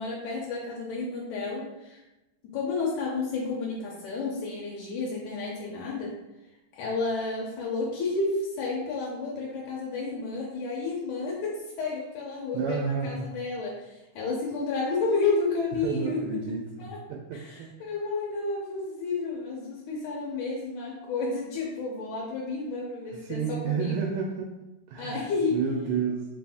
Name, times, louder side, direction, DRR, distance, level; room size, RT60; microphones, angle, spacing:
voice 1, 0.0-2.0 2.5-6.1 6.7-17.0 17.3-23.9 25.0-25.6, left 3 dB, 80° left, -3 dB, 1.9 m, -31 dB
voice 2, 12.5-13.3 15.8-16.6 17.1-17.7 23.1-24.6 24.9-26.3, right 6 dB, 90° right, -1 dB, 2.2 m, -30 dB
4.9 x 2.5 x 3.4 m, 0.98 s
omnidirectional pair, 3.7 m